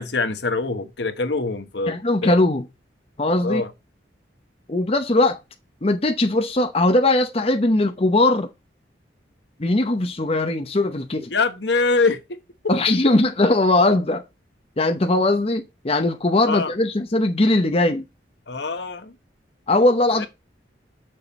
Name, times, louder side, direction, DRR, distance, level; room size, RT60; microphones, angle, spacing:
voice 1, 0.0-2.3 3.4-3.7 11.3-12.4 12.6-12.7 16.5-16.7 18.5-19.2 20.2-20.3, left 3 dB, 70° left, 1.2 m, -24 dB
voice 2, 1.9-2.6 3.2-3.6 4.7-5.4 5.8-8.5 9.6-11.3 12.7-14.2 14.8-18.0 19.7-20.3, left 2 dB, 35° left, 0.8 m, -20 dB
7.1 x 6.5 x 4.2 m
head